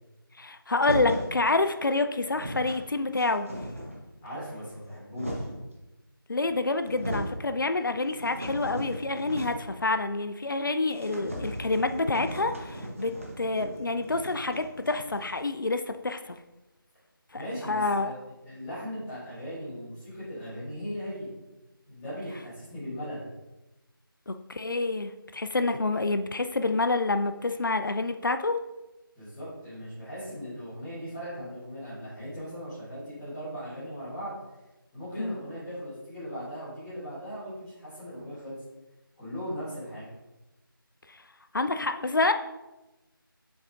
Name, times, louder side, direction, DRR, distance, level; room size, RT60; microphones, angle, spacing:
voice 1, 0.4-3.5 6.3-16.4 17.3-18.1 24.3-28.6 35.2-35.3 41.5-42.3, left 3 dB, 60° left, 8 dB, 0.4 m, -28 dB
sound 1, 0.8-1.3 2.0-2.1 2.2-2.8 3.2-4.0 4.7-5.7 6.4-6.5 6.8-7.4 7.8-9.8 10.0-10.1 10.4-10.5 10.9-15.4, equal, 35° right, 0.9 m, -37 dB
voice 2, 4.2-5.5 17.3-21.3 21.9-23.2 29.1-34.3 34.9-38.6 39.2-40.1, equal, ahead, -16 dB, 0.8 m, -38 dB
7.1 x 6.4 x 2.4 m, 1.0 s
figure-of-eight pair, 170°, 12 cm